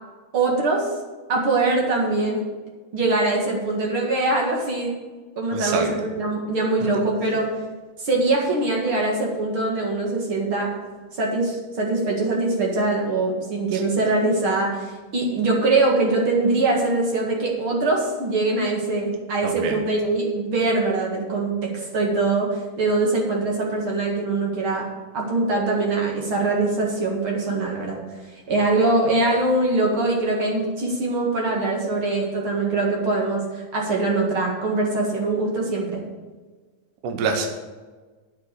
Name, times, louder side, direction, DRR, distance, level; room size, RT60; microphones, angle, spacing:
voice 1, 0.3-0.9 1.3-2.5 2.9-4.9 5.4-7.5 8.0-10.7 11.1-24.9 25.1-28.0 28.5-36.0, right 2 dB, 45° right, -1 dB, 2.4 m, -23 dB
voice 2, 5.5-5.9 13.7-13.8 19.4-19.8 37.0-37.5, right 4 dB, 80° right, 4 dB, 2.6 m, -25 dB
8.8 x 6.9 x 8.2 m, 1.3 s
omnidirectional pair, 3.7 m